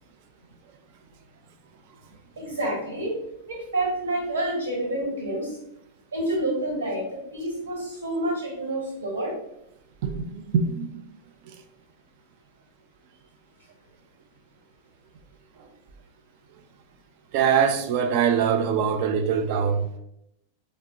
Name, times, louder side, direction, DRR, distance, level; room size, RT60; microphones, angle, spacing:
voice 1, 2.3-3.1 3.5-5.6 6.1-7.1 7.3-9.3, right 1 dB, 70° right, 1.3 m, -28 dB
voice 2, 10.0-11.0 15.6-15.7 17.3-19.9, right 7 dB, 45° right, 0.3 m, -23 dB
4.1 x 2.0 x 2.5 m
figure-of-eight pair, 90°, 0 cm